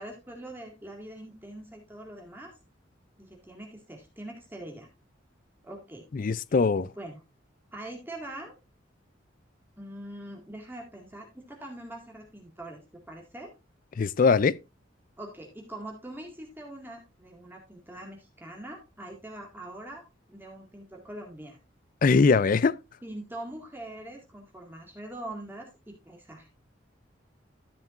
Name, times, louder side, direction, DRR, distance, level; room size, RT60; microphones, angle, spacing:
voice 1, 0.0-2.5 3.2-4.9 5.6-6.1 6.8-7.2 7.7-8.5 9.8-13.5 15.2-20.0 20.3-21.6 23.0-26.5, right 1 dB, 10° right, 2.0 m, -43 dB
voice 2, 6.1-6.9 14.0-14.6 22.0-22.7, left 4 dB, 45° left, 0.4 m, -21 dB
13.5 x 7.4 x 2.5 m
head